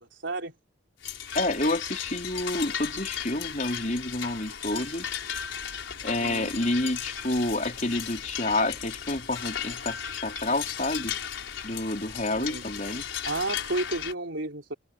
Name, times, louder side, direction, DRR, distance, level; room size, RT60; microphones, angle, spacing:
voice 1, 0.1-0.5 6.2-6.5 12.4-12.7 13.2-14.7, right 2 dB, 85° right, 3.6 m, -32 dB
sound 1, 1.0-14.1, left 9 dB, 90° left, 5.1 m, -36 dB
voice 2, 1.3-5.2 6.0-11.1 11.6-13.0, left 2 dB, 40° left, 4.5 m, -29 dB
head